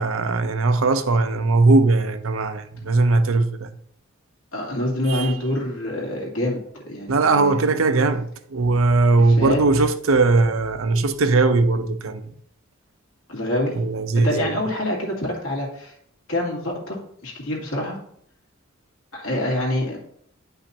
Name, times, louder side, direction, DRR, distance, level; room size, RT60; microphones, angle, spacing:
voice 1, 0.0-3.7 5.1-5.3 7.1-12.3 13.8-14.5, right 3 dB, 80° right, 0.6 m, -19 dB
voice 2, 4.5-7.6 9.4-9.6 13.3-13.8 14.1-15.9 16.3-18.0 19.1-20.0, left 1 dB, 85° left, 2.4 m, -26 dB
10.0 x 5.6 x 2.8 m
head